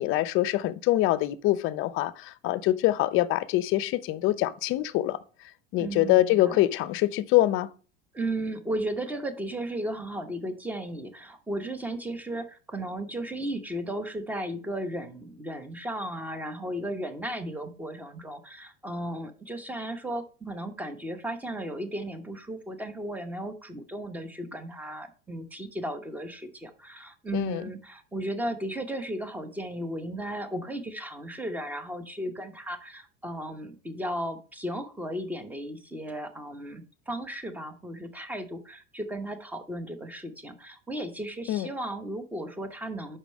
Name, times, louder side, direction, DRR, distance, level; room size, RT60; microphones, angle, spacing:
voice 1, 0.0-5.2 5.7-7.7 27.3-27.6 41.5-41.7, left 15 dB, 45° left, 0.6 m, -24 dB
voice 2, 5.8-6.6 8.1-43.2, right 1 dB, 5° right, 0.8 m, -35 dB
5.6 x 5.1 x 6.2 m
supercardioid pair, 145°, 30 cm